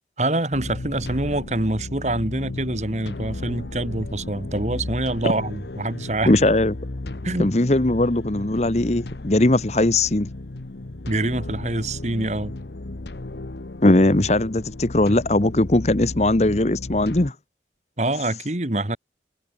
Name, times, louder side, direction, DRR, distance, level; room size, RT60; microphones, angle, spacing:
voice 1, 0.2-6.3 7.2-7.5 11.1-12.5 18.0-19.0, right 1 dB, 40° right, 1.8 m, -25 dB
sound 1, 0.5-17.3, left 2 dB, 70° left, 1.0 m, -35 dB
voice 2, 6.3-6.7 7.4-10.3 13.8-17.3, left 1 dB, 40° left, 1.1 m, -19 dB
head